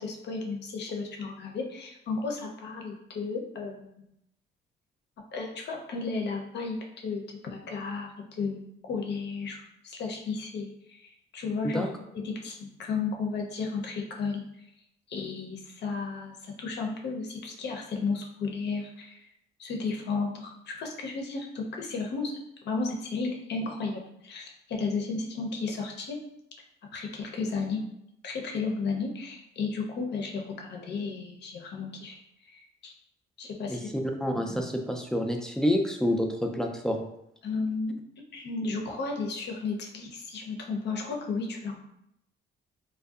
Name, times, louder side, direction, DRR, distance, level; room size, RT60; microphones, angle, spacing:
voice 1, 0.0-3.9 5.3-11.0 11.3-11.9 12.1-14.4 15.1-19.3 19.6-22.3 22.6-26.2 26.9-27.8 28.2-32.2 32.5-32.9 33.4-34.1 37.4-37.9 38.3-41.8, left 4 dB, 60° left, 1 dB, 0.6 m, -33 dB
voice 2, 34.2-37.1, left 1 dB, 5° left, 2 dB, 0.3 m, -28 dB
2.5 x 2.2 x 2.3 m, 0.78 s
cardioid pair, 90°, 20 cm